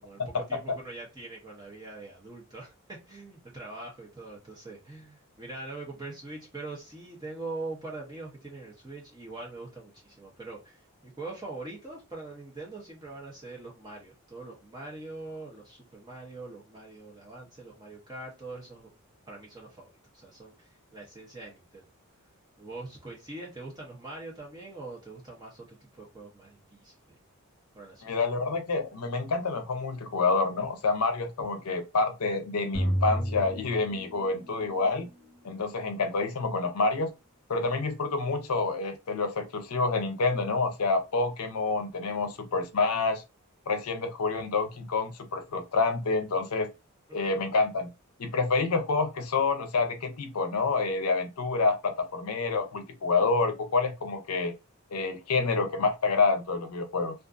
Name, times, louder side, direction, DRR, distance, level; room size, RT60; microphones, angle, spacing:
voice 1, 0.0-18.9 19.3-21.8 22.6-27.2 27.7-28.0 47.1-47.2, right 2 dB, 20° right, 0.7 m, -43 dB
voice 2, 28.0-35.1 35.4-37.1 37.5-43.2 43.7-46.7 47.1-47.9 48.2-54.5 54.9-57.1, left 3 dB, 90° left, 0.6 m, -28 dB
sound 1, 32.7-34.5, equal, 80° right, 0.9 m, -30 dB
2.5 x 2.4 x 2.4 m
head